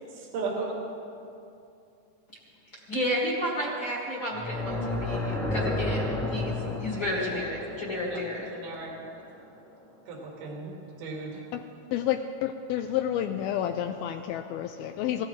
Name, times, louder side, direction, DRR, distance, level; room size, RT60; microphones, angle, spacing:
voice 1, 0.1-0.8 8.1-8.2 8.5-8.9 10.1-11.4, right 4 dB, 70° right, -1 dB, 3.9 m, -35 dB
voice 2, 2.9-8.5, equal, 35° left, -4 dB, 2.4 m, -31 dB
sound 1, 4.3-9.5, left 2 dB, ahead, 1.3 m, -32 dB
voice 3, 11.9-15.3, left 10 dB, 80° left, 6 dB, 2.4 m, -30 dB
27.5 x 15.5 x 3.3 m, 2.6 s
omnidirectional pair, 4.6 m